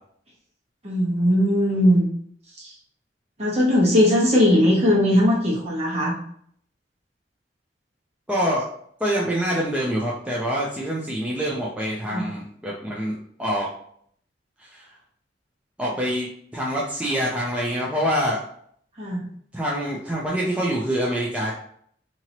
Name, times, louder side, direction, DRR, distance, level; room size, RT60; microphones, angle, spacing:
voice 1, 0.8-2.1 2.6-2.7 3.4-6.1 12.0-12.3 19.0-19.3, left 1 dB, 40° right, -4 dB, 1.4 m, -19 dB
voice 2, 8.3-8.7 9.0-13.7 14.6-14.9 15.8-18.4 19.5-21.5, equal, 5° right, -5 dB, 0.6 m, -25 dB
4.3 x 2.9 x 2.9 m, 0.63 s
head